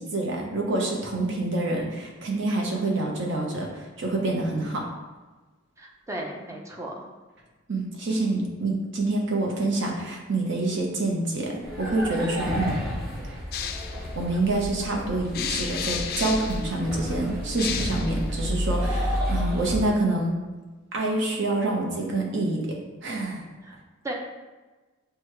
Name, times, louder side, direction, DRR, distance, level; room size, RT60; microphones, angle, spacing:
voice 1, 0.0-4.8 7.7-12.7 13.3-13.4 14.1-20.4 20.9-22.6 23.0-23.4, right 2 dB, 65° right, -1 dB, 0.9 m, -27 dB
voice 2, 5.8-7.0 23.6-23.7 24.0-24.1, right 1 dB, 15° right, -1 dB, 0.6 m, -35 dB
sound 1, 11.6-19.8, equal, 50° right, 1.4 m, -31 dB
sound 2, 13.5-19.1, left 7 dB, 50° left, 0.3 m, -35 dB
6.2 x 2.3 x 3.2 m, 1.3 s
head